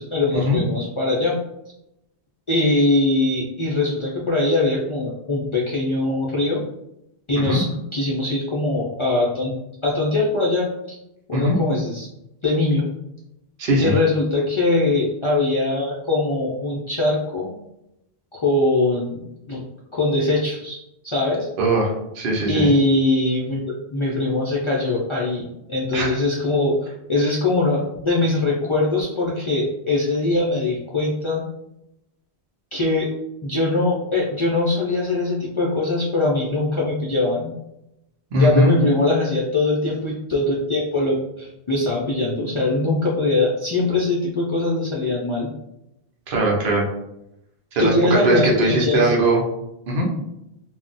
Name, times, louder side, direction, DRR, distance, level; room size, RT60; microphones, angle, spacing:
voice 1, 0.0-1.4 2.5-6.6 7.3-9.5 9.8-11.0 11.3-12.1 12.4-12.8 13.8-17.5 18.3-19.2 19.5-19.6 19.9-21.5 22.5-23.6 23.9-31.4 32.7-33.1 33.4-37.5 38.4-45.5 47.8-49.1, left 2 dB, 50° left, -5 dB, 0.3 m, -22 dB
voice 2, 13.6-13.9 21.6-22.7 25.9-26.1 38.3-38.8 46.3-46.9 47.7-49.4 49.9-50.1, right 1 dB, 60° right, -2 dB, 0.8 m, -20 dB
2.3 x 2.1 x 3.8 m, 0.84 s
omnidirectional pair, 1.1 m